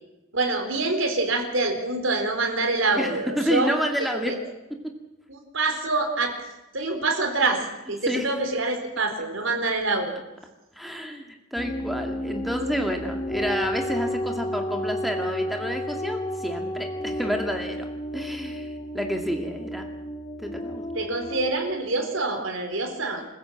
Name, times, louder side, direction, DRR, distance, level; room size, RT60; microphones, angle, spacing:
voice 1, 0.3-3.7 4.0-4.3 5.3-6.3 6.7-10.2 20.9-23.3, right 3 dB, 65° right, 4 dB, 4.2 m, -26 dB
voice 2, 3.0-4.4 8.1-8.3 10.8-19.9 20.4-20.8, equal, ahead, 3 dB, 2.2 m, -29 dB
sound 1, 11.6-21.5, left 1 dB, 20° left, 1.6 m, -32 dB
27.5 x 15.0 x 7.7 m, 1.0 s
head